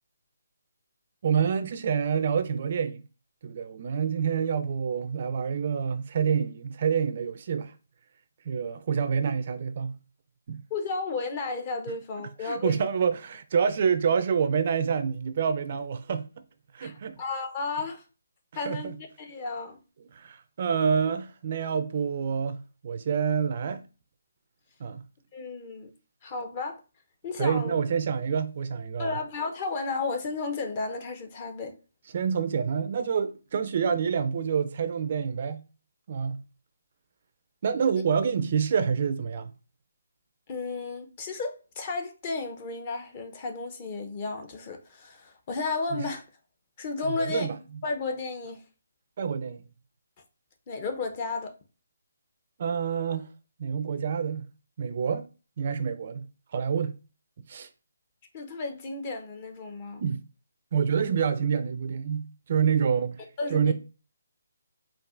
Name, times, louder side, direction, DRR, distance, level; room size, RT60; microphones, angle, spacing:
voice 1, 1.2-3.0 3.4-7.7 8.5-9.9 10.5-10.6 12.4-16.2 16.7-17.2 18.7-19.0 20.1-23.8 24.8-25.0 27.4-29.1 32.1-35.6 36.1-36.4 37.6-39.5 45.9-46.0 47.0-47.6 49.2-49.6 52.6-53.3 53.6-54.5 54.8-55.3 55.6-56.3 56.5-56.9 57.5-57.7 60.0-60.2 60.7-63.2 63.5-63.7, right 6 dB, 45° right, 0.3 m, -27 dB
voice 2, 10.7-12.9 16.8-18.0 18.5-19.8 25.3-25.9 26.2-26.8 27.2-27.8 29.0-31.7 40.5-46.2 46.8-47.5 47.8-48.6 50.7-51.5 58.3-60.0 63.4-63.7, left 4 dB, 30° left, 0.7 m, -33 dB
4.5 x 2.5 x 2.4 m
figure-of-eight pair, 150°, 0 cm